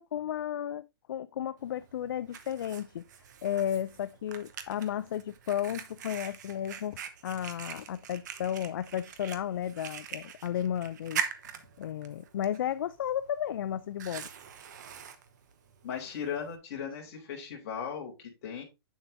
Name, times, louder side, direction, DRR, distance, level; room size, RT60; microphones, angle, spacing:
voice 1, 0.0-3.0 3.4-11.2 11.8-14.3, left 10 dB, 55° left, 0.4 m, -33 dB
Fire, 1.6-16.6, right 8 dB, 45° right, 1.0 m, -43 dB
voice 2, 15.8-18.6, left 7 dB, 35° left, 3.2 m, -37 dB
8.3 x 7.1 x 2.6 m
hypercardioid pair, 165°, 14 cm